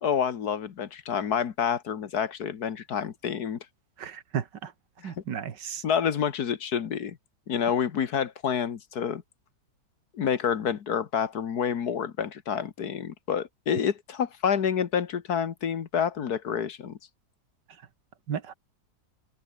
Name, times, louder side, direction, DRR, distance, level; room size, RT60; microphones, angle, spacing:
voice 1, 0.0-3.6 5.0-5.1 5.8-7.2 7.5-9.2 10.1-17.0, left 7 dB, 65° left, 1.8 m, -28 dB
voice 2, 4.0-4.7 5.0-5.8 18.3-18.5, right 8 dB, 85° right, 2.2 m, -34 dB
omnidirectional pair, 1.8 m